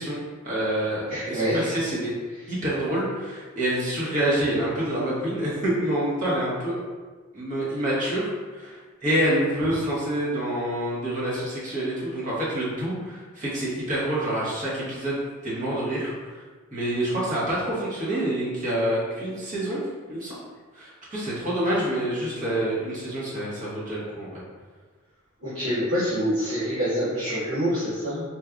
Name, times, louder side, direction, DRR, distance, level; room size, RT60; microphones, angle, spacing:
voice 1, 0.0-2.1 2.5-6.8 7.3-16.1 16.7-19.8 20.1-20.4 20.7-24.3, right 1 dB, 40° right, -8 dB, 1.0 m, -27 dB
voice 2, 1.1-1.7 25.4-28.2, equal, 90° right, -13 dB, 1.2 m, -26 dB
4.2 x 2.3 x 2.4 m, 1.4 s
head